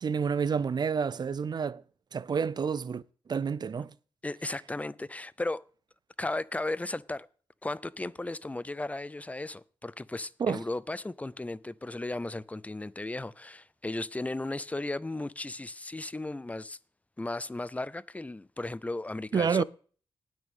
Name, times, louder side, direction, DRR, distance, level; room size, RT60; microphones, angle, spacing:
voice 1, 0.0-1.8 2.1-3.0 3.3-3.9 10.4-10.6 19.3-19.6, right 6 dB, 45° right, 0.5 m, -29 dB
voice 2, 4.2-5.6 6.2-7.3 7.6-16.8 17.2-19.6, left 2 dB, 15° left, 0.5 m, -35 dB
18.5 x 6.3 x 3.7 m
cardioid pair, 90°, 10 cm